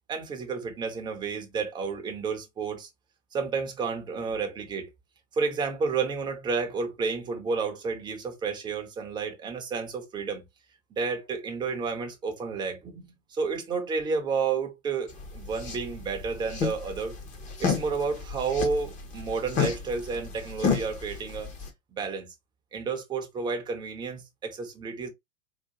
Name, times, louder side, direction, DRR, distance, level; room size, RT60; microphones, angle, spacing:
voice 1, 0.1-2.9 3.3-4.9 5.4-10.4 10.9-13.0 13.3-17.2 17.6-21.5 22.0-22.3 22.7-25.1, right 5 dB, 10° right, 0.6 m, -31 dB
sound 1, 15.1-21.7, left 6 dB, 20° left, 0.7 m, -31 dB
3.8 x 2.4 x 2.8 m
figure-of-eight pair, 100°, 39 cm